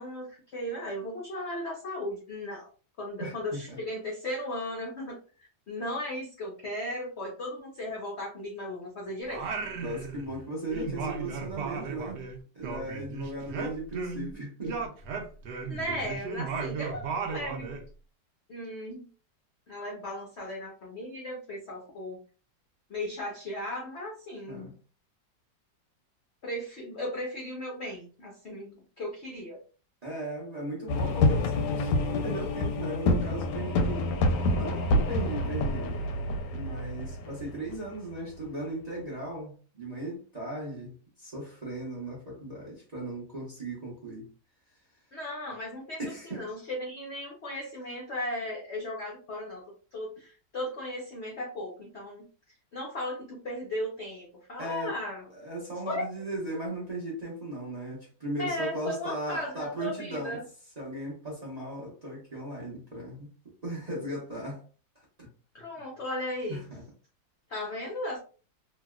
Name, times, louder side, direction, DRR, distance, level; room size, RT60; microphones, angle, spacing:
voice 1, 0.0-2.7 3.0-5.2 5.7-9.4 15.7-17.7 18.5-19.1 19.7-22.2 22.9-24.7 26.4-29.6 45.1-46.0 46.3-49.6 49.9-52.3 52.7-55.2 55.9-56.0 58.4-60.4 65.5-66.6 67.5-68.2, left 1 dB, 65° left, 0.7 m, -36 dB
voice 2, 3.2-3.8 9.8-12.3 12.5-14.9 15.7-16.1 24.5-24.7 30.0-36.1 36.5-44.3 46.0-46.5 54.6-55.0 55.3-60.4 60.8-64.6 64.9-65.3 66.5-66.8, right 1 dB, 35° right, 0.7 m, -37 dB
Singing, 9.3-10.4 10.7-14.3 14.6-17.9, right 5 dB, 75° right, 1.1 m, -35 dB
sound 1, 30.9-38.4, left 2 dB, 90° left, 1.3 m, -27 dB
3.0 x 2.6 x 2.3 m
omnidirectional pair, 2.0 m